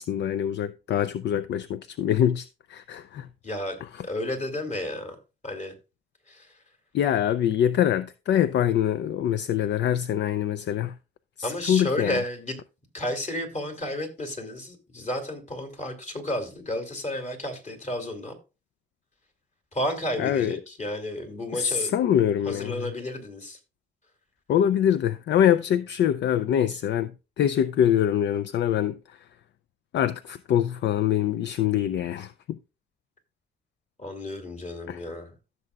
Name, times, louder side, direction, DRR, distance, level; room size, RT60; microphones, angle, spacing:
voice 1, 0.0-3.3 6.9-10.9 11.4-12.2 20.2-20.6 21.5-22.9 24.5-27.1 27.4-29.0 29.9-32.3 34.9-35.0, left 10 dB, 65° left, 0.4 m, -24 dB
voice 2, 3.4-3.8 4.0-5.2 5.4-5.7 6.3-6.5 11.4-12.6 12.9-18.3 19.7-21.9 22.4-23.6 34.0-35.3, left 1 dB, 35° left, 2.6 m, -32 dB
14.5 x 6.8 x 2.4 m
cardioid pair, 90°, 20 cm